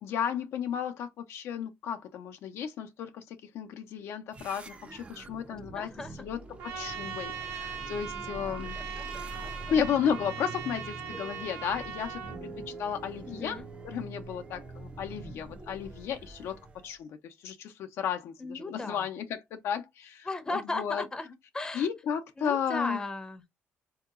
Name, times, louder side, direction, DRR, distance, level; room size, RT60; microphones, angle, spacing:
voice 1, 0.0-5.9 6.2-8.8 9.7-12.5 12.8-13.6 13.8-21.0 21.7-23.0, left 8 dB, 70° left, 0.5 m, -33 dB
sound 1, 4.3-17.0, right 2 dB, 25° right, 0.5 m, -45 dB
voice 2, 5.7-6.1 8.8-9.8 10.0-10.2 13.3-13.7 18.4-19.0 20.3-21.9 22.4-23.4, left 2 dB, 15° left, 0.6 m, -37 dB
Trumpet, 6.6-12.4, right 7 dB, 90° right, 0.9 m, -40 dB
sound 2, 10.1-16.1, right 4 dB, 55° right, 1.0 m, -48 dB
3.6 x 2.8 x 2.4 m
cardioid pair, 110°, 5 cm